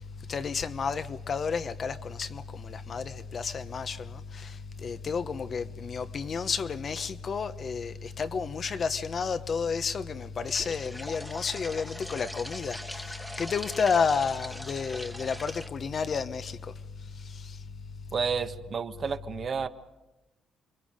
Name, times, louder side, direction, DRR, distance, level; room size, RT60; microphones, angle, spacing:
voice 1, 0.3-4.5 4.8-16.6, left 5 dB, 45° left, 1.1 m, -31 dB
sound 1, 10.4-15.7, equal, 5° left, 1.5 m, -41 dB
voice 2, 18.1-19.7, right 6 dB, 45° right, 1.5 m, -31 dB
29.5 x 23.0 x 5.2 m
cardioid pair, 90°, 0 cm